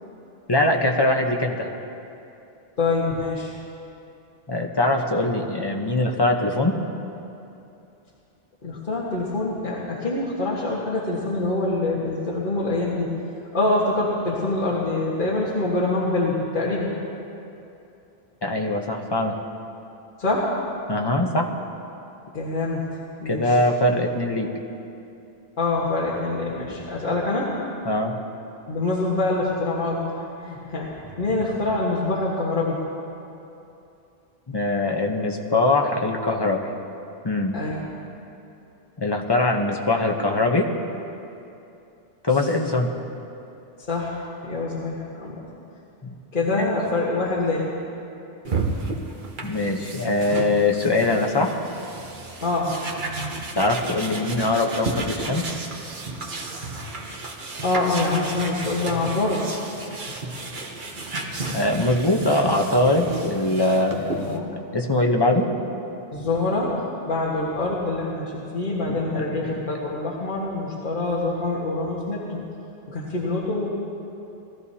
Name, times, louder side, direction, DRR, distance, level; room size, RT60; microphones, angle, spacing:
voice 1, 0.5-1.7 4.5-6.8 18.4-19.4 20.9-21.5 23.2-24.5 27.8-28.1 34.5-36.7 37.2-37.6 39.0-40.7 42.2-42.9 46.0-46.1 46.6-46.7 49.4-51.6 53.5-55.4 61.5-64.5 64.7-65.5 68.9-69.7, left 2 dB, 25° left, 1 dB, 0.9 m, -22 dB
voice 2, 2.8-3.5 8.6-13.1 13.5-16.9 20.2-20.5 22.3-22.8 23.2-23.6 25.6-27.5 28.7-30.0 30.4-32.8 37.5-37.8 43.9-45.4 46.3-47.6 52.4-52.7 57.6-59.5 63.9-64.5 66.1-66.7 67.1-72.4 72.9-73.7, left 2 dB, 50° left, -7 dB, 1.7 m, -25 dB
sound 1, 48.4-64.4, right 3 dB, 50° right, 1.1 m, -33 dB
20.5 x 14.0 x 2.8 m, 2.8 s
omnidirectional pair, 1.1 m